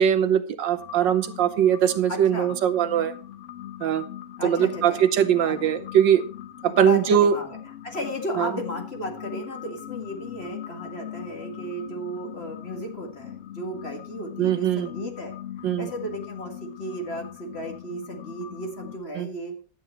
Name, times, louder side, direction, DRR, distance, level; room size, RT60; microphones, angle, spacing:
voice 1, 0.0-3.1 3.8-4.1 4.4-6.2 6.6-7.4 8.4-8.5 14.4-14.9 15.6-15.9 19.2-19.3, right 9 dB, 75° right, 10 dB, 1.4 m, -21 dB
sound 1, 0.7-19.0, left 11 dB, 50° left, 1.1 m, -40 dB
voice 2, 2.1-2.5 4.4-5.0 5.5-5.7 6.7-7.6 7.8-19.5, equal, 35° left, 3 dB, 2.1 m, -34 dB
11.5 x 8.8 x 4.3 m, 0.38 s
omnidirectional pair, 2.1 m